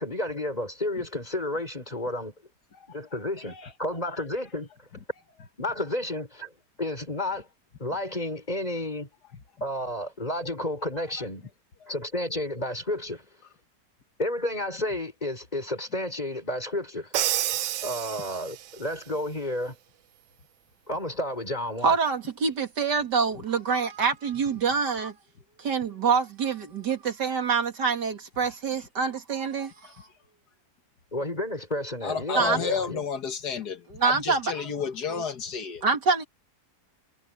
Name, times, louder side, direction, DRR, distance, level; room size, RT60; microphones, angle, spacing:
voice 1, 0.0-2.3 2.9-4.7 5.6-6.5 6.8-7.5 7.8-9.1 9.6-11.5 11.9-13.2 14.2-17.1 17.8-19.8 20.9-22.0 31.1-33.0, left 1 dB, 25° left, 5.8 m, -31 dB
Crash cymbal, 17.1-18.8, right 13 dB, 70° right, 0.7 m, -29 dB
voice 2, 21.8-25.1 25.6-30.1 32.3-32.6 34.0-34.5 35.1-35.2 35.8-36.2, right 5 dB, 90° right, 3.0 m, -26 dB
voice 3, 32.0-35.8, left 6 dB, 70° left, 2.0 m, -32 dB
omnidirectional pair, 1.8 m